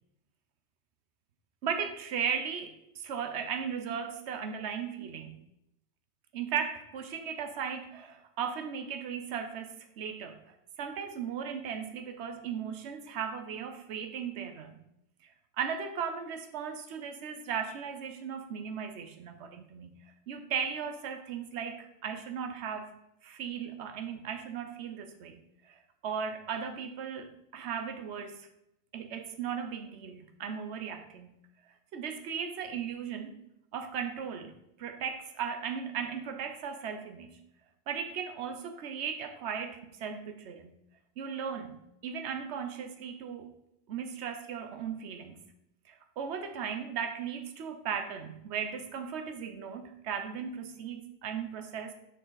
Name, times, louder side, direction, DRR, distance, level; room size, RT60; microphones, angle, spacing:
voice 1, 1.6-5.4 6.3-14.8 15.6-20.0 20.3-22.9 23.2-28.4 28.9-31.4 31.9-33.4 33.7-37.4 37.9-40.8 41.2-43.5 43.9-45.4 45.9-51.9, right 7 dB, 80° right, 6 dB, 1.0 m, -37 dB
6.7 x 6.5 x 3.9 m, 0.83 s
omnidirectional pair, 1.1 m